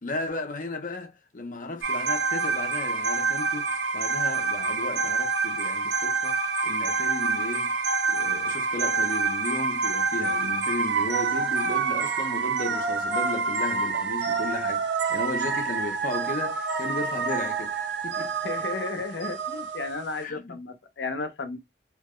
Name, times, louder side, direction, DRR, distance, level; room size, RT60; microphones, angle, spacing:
voice 1, 0.0-7.8 8.1-18.4 20.2-20.6, left 2 dB, 50° left, 0.7 m, -35 dB
sound 1, 1.8-20.2, right 4 dB, 90° right, 0.6 m, -27 dB
voice 2, 18.4-21.6, left 3 dB, 85° left, 0.7 m, -33 dB
2.9 x 2.1 x 3.6 m
head